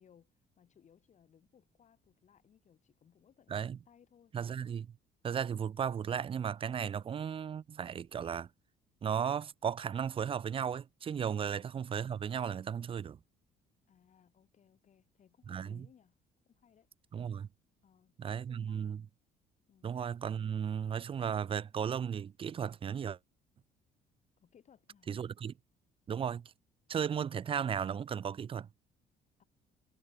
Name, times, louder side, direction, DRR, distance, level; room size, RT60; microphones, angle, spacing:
voice 1, 0.0-4.3 13.9-16.2 16.5-16.9 17.8-18.8 19.7-19.9 24.4-25.1 29.4-29.5, left 8 dB, 45° left, 3.3 m, -65 dB
voice 2, 4.3-5.0 5.2-8.5 9.0-13.2 15.5-15.9 17.1-17.5 18.2-19.0 19.8-23.2 25.1-25.5 26.1-26.5 26.9-28.7, right 8 dB, 30° right, 0.5 m, -35 dB
cardioid pair, 110°, 17 cm